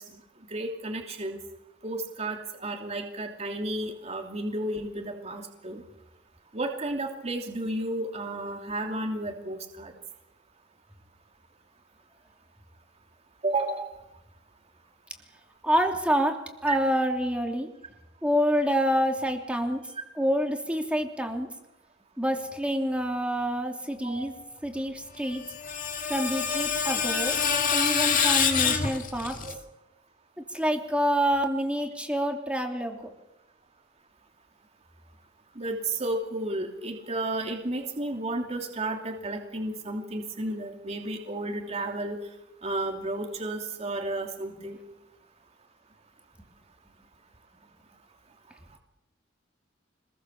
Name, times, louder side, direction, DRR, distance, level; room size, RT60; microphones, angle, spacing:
voice 1, 0.5-1.4 1.8-5.8 6.5-9.9 13.4-13.8 16.7-16.8 24.0-24.2 29.4-29.5 35.6-42.2 42.6-44.8, right 2 dB, 35° right, 2 dB, 3.0 m, -32 dB
voice 2, 15.6-16.3 16.6-17.7 18.2-19.8 20.2-21.5 22.2-24.3 24.6-25.4 26.1-27.3 27.7-29.4 30.5-33.0, equal, 5° right, 2 dB, 3.1 m, -27 dB
Screech, 25.2-29.5, left 7 dB, 45° left, 2.4 m, -26 dB
26.0 x 21.0 x 7.2 m, 0.91 s
head